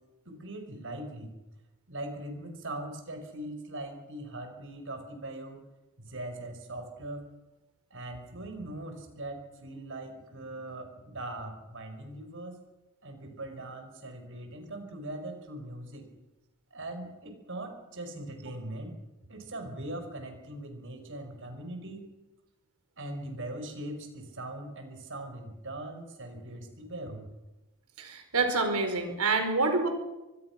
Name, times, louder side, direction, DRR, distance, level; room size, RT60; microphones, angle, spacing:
voice 1, 0.3-1.3 1.9-5.6 6.0-7.3 7.9-12.6 13.0-16.1 16.7-19.0 19.3-22.0 23.0-27.3, right 1 dB, 60° right, 6 dB, 5.1 m, -40 dB
voice 2, 28.0-29.9, right 3 dB, 80° right, 5 dB, 4.9 m, -27 dB
24.5 x 20.0 x 6.0 m, 1.0 s
head